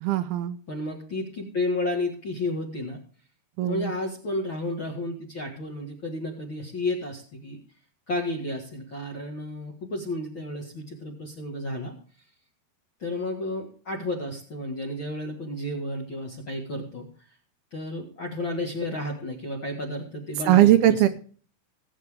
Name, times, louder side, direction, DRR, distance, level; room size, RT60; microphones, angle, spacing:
voice 1, 0.0-0.6 3.6-3.9 20.5-21.1, right 13 dB, 80° right, 9 dB, 2.4 m, -19 dB
voice 2, 0.7-3.0 3.7-7.6 8.1-11.9 13.0-17.0 17.7-21.1, left 1 dB, 45° left, 0 dB, 1.6 m, -32 dB
18.5 x 8.8 x 3.5 m, 0.42 s
omnidirectional pair, 4.8 m